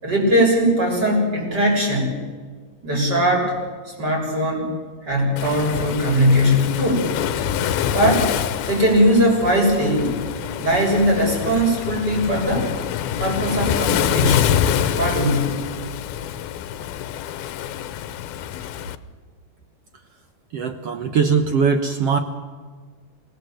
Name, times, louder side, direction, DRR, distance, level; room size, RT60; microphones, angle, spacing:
voice 1, 0.0-2.2 2.8-3.6 3.9-4.7 5.0-7.2 7.9-8.3 8.7-10.2 10.6-12.7 13.2-14.5 15.0-15.6, equal, 25° right, -1 dB, 7.3 m, -20 dB
Waves surf, 5.4-19.0, left 10 dB, 80° left, 2.6 m, -26 dB
voice 2, 20.5-22.2, right 5 dB, 75° right, 8 dB, 1.4 m, -20 dB
27.0 x 18.5 x 7.9 m, 1.5 s
omnidirectional pair, 4.4 m